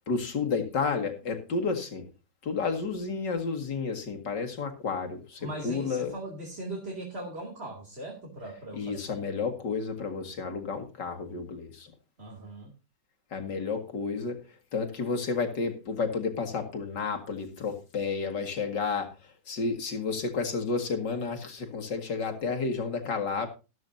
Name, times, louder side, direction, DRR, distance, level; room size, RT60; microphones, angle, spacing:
voice 1, 0.1-2.0 2.4-6.1 8.8-11.9 13.3-14.4 14.7-19.1 19.5-23.5, left 4 dB, 65° left, 4 dB, 2.6 m, -31 dB
voice 2, 5.4-8.9 12.2-12.7, right 1 dB, 30° right, 0 dB, 3.0 m, -39 dB
13.5 x 13.5 x 2.7 m, 0.30 s
omnidirectional pair, 2.0 m